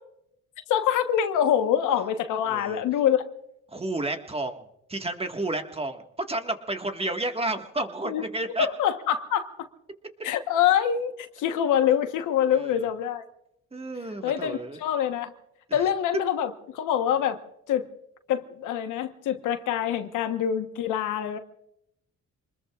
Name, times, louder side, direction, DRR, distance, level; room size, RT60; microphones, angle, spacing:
voice 1, 0.7-3.2 8.0-8.2 8.6-9.7 10.2-13.2 14.2-15.3 15.7-17.4 17.7-17.9 18.3-21.4, left 9 dB, 85° left, 1.3 m, -25 dB
voice 2, 2.4-2.8 3.7-4.6 4.9-8.7 12.5-12.9 13.7-14.8 15.7-15.8, right 2 dB, 20° right, 1.7 m, -31 dB
26.5 x 20.5 x 2.5 m
cardioid pair, 90°, 30 cm